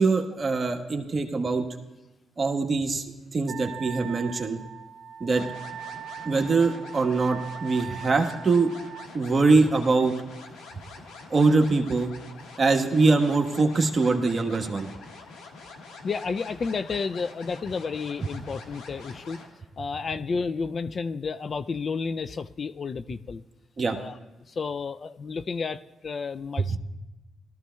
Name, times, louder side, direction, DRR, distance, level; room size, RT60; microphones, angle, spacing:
voice 1, 0.0-1.7 2.4-4.6 5.2-5.4 6.2-8.7 9.1-10.1 11.3-12.1 12.6-14.9 23.8-24.0 26.7-26.8, right 3 dB, 40° right, 3 dB, 1.2 m, -23 dB
Wind instrument woodwind instrument, 3.5-9.1, right 9 dB, 70° right, 0.4 m, -41 dB
sound 1, 5.3-19.5, left 3 dB, 80° left, 1.4 m, -46 dB
voice 2, 16.0-19.4 19.8-23.4 23.9-26.8, left 5 dB, 50° left, 14 dB, 0.3 m, -31 dB
18.0 x 13.5 x 2.3 m, 1.1 s
supercardioid pair, 60°, 0 cm